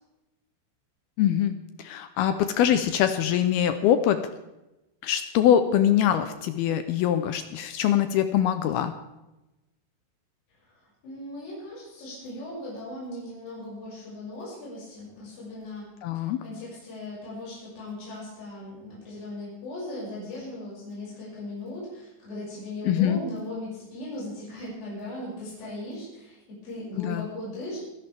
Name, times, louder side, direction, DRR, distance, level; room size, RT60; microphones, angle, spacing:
voice 1, 1.2-4.2 5.0-8.9 16.0-16.4 22.8-23.2 27.0-27.3, left 10 dB, 80° left, 9 dB, 2.4 m, -23 dB
voice 2, 10.6-15.9 16.1-27.8, left 1 dB, 55° left, -7 dB, 8.1 m, -38 dB
24.5 x 11.0 x 3.5 m, 0.97 s
omnidirectional pair, 5.0 m